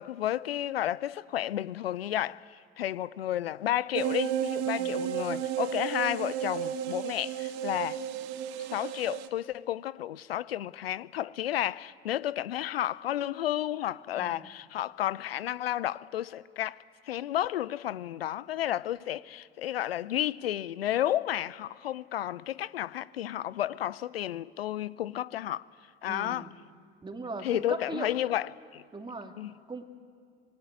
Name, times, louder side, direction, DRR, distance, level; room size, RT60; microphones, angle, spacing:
voice 1, 0.0-8.0 8.7-25.7 26.0-26.5 27.4-28.8 29.4-29.5, left 12 dB, 70° left, 0.6 m, -32 dB
sound 1, 3.9-9.3, right 10 dB, 50° right, 1.3 m, -33 dB
voice 2, 14.2-14.5 26.1-26.5 27.0-28.2 28.9-29.3 29.7-29.8, right 3 dB, 15° right, 2.5 m, -39 dB
25.5 x 20.0 x 9.4 m
figure-of-eight pair, 65°, 31 cm